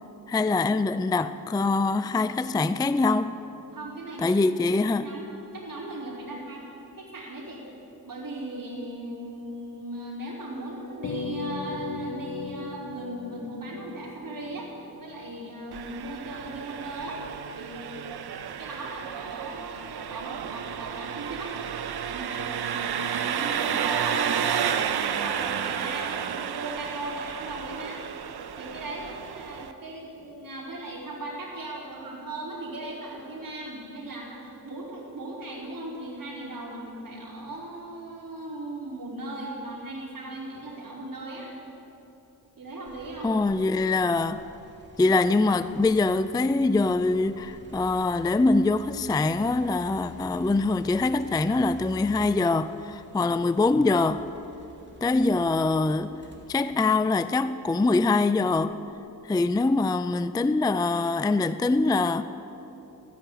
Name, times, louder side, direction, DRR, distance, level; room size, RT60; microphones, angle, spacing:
voice 1, 0.3-3.4 4.2-5.1 43.2-44.4 45.0-54.2 55.0-56.1 56.5-58.7 59.2-62.2, left 3 dB, 10° left, 0.3 m, -24 dB
voice 2, 3.7-4.4 4.7-6.7 7.0-7.7 8.0-14.7 15.0-17.2 17.5-18.1 18.6-21.5 22.1-28.0 28.6-41.5 42.6-43.3, right 2 dB, 60° right, 4.4 m, -38 dB
sound 1, 11.0-15.7, left 4 dB, 55° left, 1.9 m, -37 dB
Engine, 15.7-29.7, right 8 dB, 85° right, 0.7 m, -31 dB
sound 2, 42.9-57.9 58.5-59.7, left 1 dB, 30° right, 2.7 m, -50 dB
14.5 x 10.0 x 9.0 m
wide cardioid pair, 85°, 38 cm